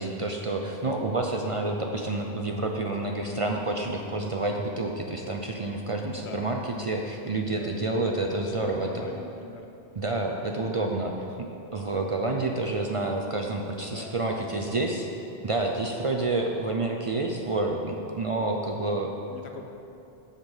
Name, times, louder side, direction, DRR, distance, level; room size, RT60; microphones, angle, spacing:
voice 1, 0.0-9.0 10.0-15.1 15.4-19.1, right 2 dB, 45° right, 2 dB, 0.5 m, -29 dB
voice 2, 7.2-8.0 8.4-9.7 11.9-12.3 13.8-15.0 19.3-19.7, left 4 dB, 85° left, 4 dB, 1.1 m, -45 dB
7.8 x 6.6 x 5.4 m, 2.8 s
omnidirectional pair, 1.1 m